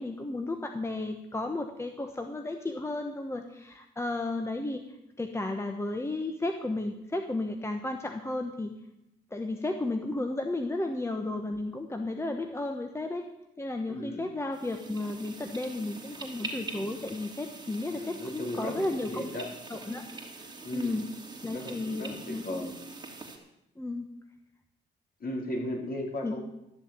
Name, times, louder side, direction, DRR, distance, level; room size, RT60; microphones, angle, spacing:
voice 1, 0.0-4.8 5.2-8.7 9.3-13.3 13.6-19.3 19.7-20.1 20.4-20.5 20.7-21.0 21.4-22.8 23.8-24.1 26.2-26.4, left 2 dB, 15° left, 5 dB, 1.2 m, -33 dB
voice 2, 13.9-14.3 18.0-19.5 20.6-21.0 21.5-22.7 25.2-26.4, left 1 dB, 50° left, -1 dB, 4.5 m, -36 dB
sound 1, 14.5-23.4, right 3 dB, 20° right, 3.1 m, -44 dB
13.0 x 7.2 x 8.9 m, 0.86 s
cardioid pair, 90°, 20 cm